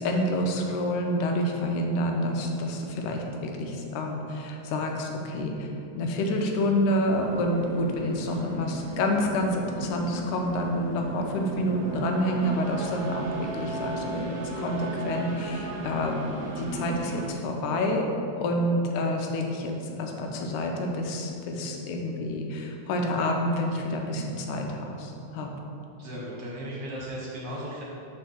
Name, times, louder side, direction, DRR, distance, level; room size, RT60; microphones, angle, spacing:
voice 1, 0.0-16.2 16.6-18.1 18.4-25.5, left 1 dB, 85° left, 2 dB, 2.2 m, -28 dB
sound 1, 7.0-17.3, right 2 dB, 45° right, 1.7 m, -36 dB
voice 2, 26.0-27.8, equal, 60° right, -5 dB, 1.7 m, -36 dB
5.7 x 4.3 x 6.3 m, 2.7 s
omnidirectional pair, 3.5 m